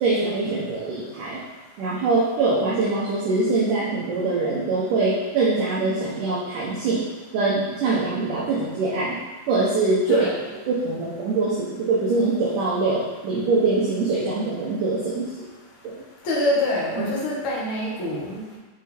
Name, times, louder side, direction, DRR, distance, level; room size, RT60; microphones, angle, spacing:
voice 1, 0.0-1.4 1.8-7.1 7.3-9.2 9.5-10.3 10.7-15.5 15.8-15.9 17.0-17.1, right 3 dB, 70° right, -6 dB, 2.1 m, -23 dB
voice 2, 16.2-18.6, left 1 dB, 50° left, -6 dB, 1.6 m, -25 dB
7.8 x 4.5 x 3.4 m, 1.2 s
omnidirectional pair, 4.6 m